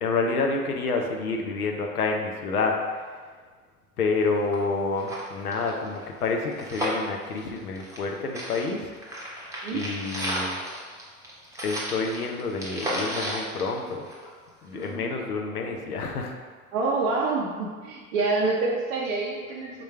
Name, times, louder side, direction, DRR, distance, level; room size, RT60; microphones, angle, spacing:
voice 1, 0.0-2.8 4.0-8.9 9.7-10.6 11.6-14.1 14.6-16.3, left 3 dB, 75° left, 2 dB, 0.7 m, -28 dB
sound 1, 4.2-4.3 4.5-4.6 4.9-8.1 8.3-14.4 14.8-14.9, equal, 5° right, 0.8 m, -33 dB
voice 2, 14.7-15.1 16.7-19.7, right 3 dB, 45° right, -2 dB, 0.6 m, -27 dB
3.8 x 3.0 x 4.4 m, 1.5 s
figure-of-eight pair, 80°, 45 cm